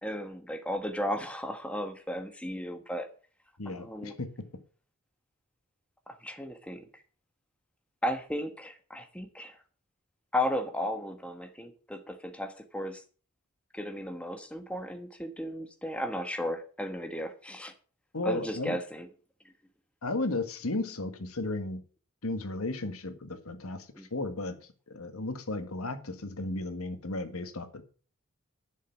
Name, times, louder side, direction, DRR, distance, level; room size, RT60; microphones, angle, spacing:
voice 1, 0.0-3.1 3.6-4.1 6.1-6.9 8.0-9.6 10.3-13.0 13.7-17.7 18.2-19.1 24.0-24.1, left 1 dB, 5° left, 1.2 m, -35 dB
voice 2, 3.6-4.5 18.1-18.8 20.0-21.8 22.2-24.6 24.9-27.8, left 2 dB, 80° left, 1.6 m, -34 dB
11.5 x 6.7 x 7.1 m
head